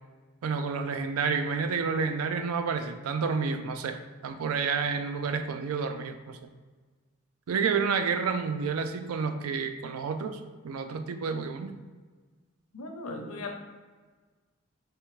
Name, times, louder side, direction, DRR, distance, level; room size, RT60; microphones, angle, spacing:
voice 1, 0.4-6.4 7.5-10.4 10.6-11.7, right 5 dB, 85° right, 8 dB, 0.4 m, -29 dB
voice 2, 12.7-13.5, left 2 dB, 85° left, 3 dB, 0.7 m, -37 dB
4.9 x 3.2 x 3.1 m, 1.4 s
head